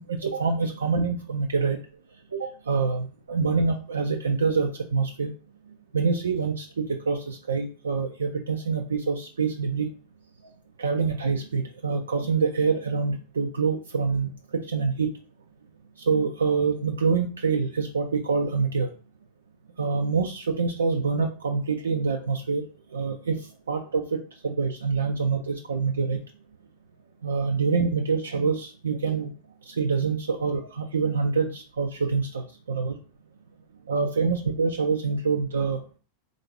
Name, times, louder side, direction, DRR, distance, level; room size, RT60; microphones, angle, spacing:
voice 1, 0.1-1.8 2.3-5.3 5.9-9.9 10.8-14.3 14.7-15.1 16.1-18.9 19.8-22.6 22.9-23.4 23.7-24.0 24.4-26.2 27.2-29.3 29.7-32.9 33.9-35.8, right 5 dB, 70° right, 3 dB, 0.4 m, -26 dB
3.9 x 2.5 x 3.3 m, 0.38 s
figure-of-eight pair, 90°, 0 cm